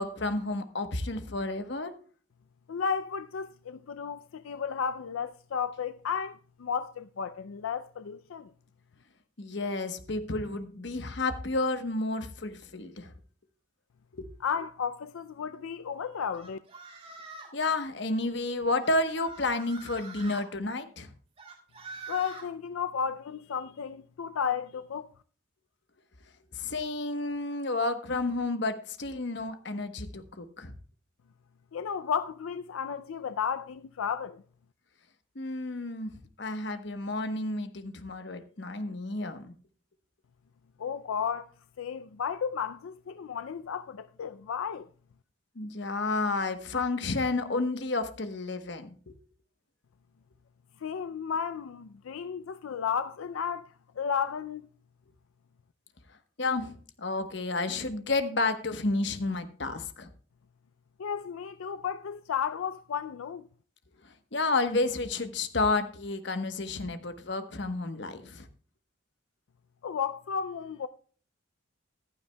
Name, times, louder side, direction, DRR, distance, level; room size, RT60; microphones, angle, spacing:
voice 1, 0.0-1.9 9.4-13.1 14.1-14.3 17.5-21.1 26.5-30.7 35.3-36.1 36.4-39.5 45.5-49.1 56.4-60.1 64.0-68.5, left 2 dB, 60° left, 1.1 m, -31 dB
voice 2, 2.7-8.5 14.4-16.6 22.1-25.1 31.7-34.4 40.8-41.5 41.8-44.9 50.8-54.6 61.0-63.5 69.8-70.9, left 7 dB, 85° left, 0.4 m, -33 dB
sound 1, 16.3-17.6 18.8-20.4 21.4-22.5, right 4 dB, 30° right, 2.8 m, -45 dB
15.0 x 11.5 x 2.2 m
head